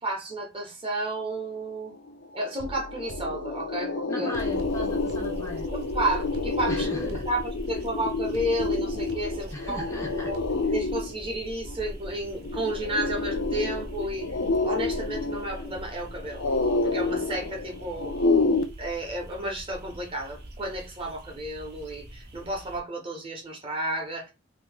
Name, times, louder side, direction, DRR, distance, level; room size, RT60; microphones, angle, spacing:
voice 1, 0.0-1.9 2.3-4.3 5.7-9.9 10.2-10.4 10.7-14.3 14.6-16.4 16.8-18.1 18.8-24.3, right 1 dB, 30° right, 1.1 m, -32 dB
sound 1, 2.1-2.2 2.5-18.6, left 3 dB, 85° left, 0.6 m, -29 dB
sound 2, 2.6-3.9 4.3-5.9 6.3-7.9 8.3-9.9 10.3-10.6, right 1 dB, 75° right, 0.4 m, -42 dB
voice 2, 4.1-5.6 6.6-7.3 9.5-10.3, left 1 dB, 15° left, 0.6 m, -37 dB
sound 3, 4.4-22.8, equal, 55° right, 1.0 m, -41 dB
3.0 x 2.8 x 3.5 m
head